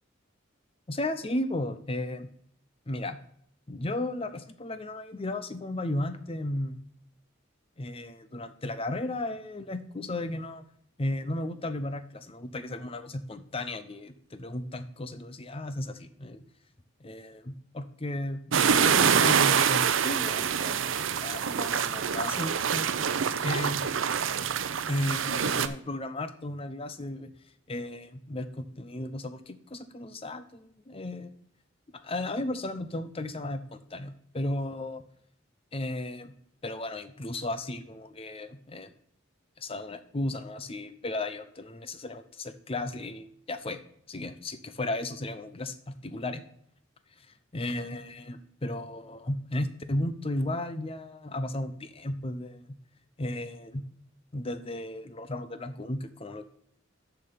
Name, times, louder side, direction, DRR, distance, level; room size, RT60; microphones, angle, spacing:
voice 1, 0.9-2.3 2.9-3.2 3.7-6.8 7.8-10.6 11.0-16.4 17.0-23.1 23.4-23.9 24.9-27.3 27.7-31.3 32.0-35.0 35.7-36.3 36.6-38.9 39.6-43.8 44.1-46.4 47.2-47.3 47.5-52.6 53.2-53.8 54.3-56.4, left 1 dB, 30° left, 11 dB, 0.7 m, -34 dB
sound 1, 18.5-25.7, right 7 dB, 80° right, 0.6 m, -25 dB
7.0 x 5.9 x 6.8 m, 0.67 s
head